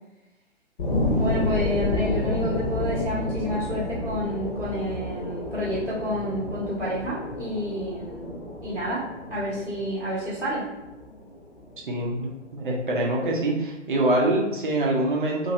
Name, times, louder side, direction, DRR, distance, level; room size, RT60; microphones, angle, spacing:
sound 1, 0.8-11.8 12.3-12.4, left 1 dB, 40° left, 0.9 m, -30 dB
voice 1, 1.1-9.0 9.3-10.7, equal, 5° left, -21 dB, 0.5 m, -29 dB
voice 2, 11.9-15.5, right 1 dB, 45° right, -1 dB, 0.6 m, -25 dB
2.8 x 2.6 x 2.7 m, 0.97 s
figure-of-eight pair, 140°, 37 cm